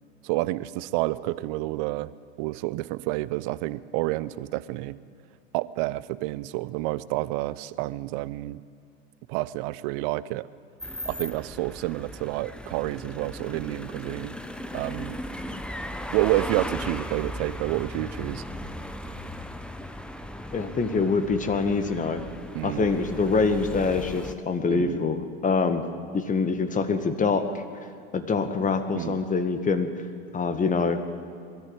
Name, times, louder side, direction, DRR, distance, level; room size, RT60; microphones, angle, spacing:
voice 1, 0.2-2.1 2.4-5.0 5.5-8.6 9.3-10.5 11.1-14.4 14.7-15.2 16.1-18.4 22.5-22.9 24.7-25.1 28.9-29.2, right 18 dB, 55° right, 18 dB, 0.8 m, -29 dB
sound 1, 10.8-24.3, left 1 dB, 5° left, 1.1 m, -37 dB
voice 2, 20.5-22.2 22.6-25.8 26.1-27.6 28.1-29.9 30.3-31.0, left 4 dB, 25° left, 8 dB, 1.9 m, -25 dB
21.5 x 13.5 x 9.0 m, 2.3 s
hypercardioid pair, 85°, 33 cm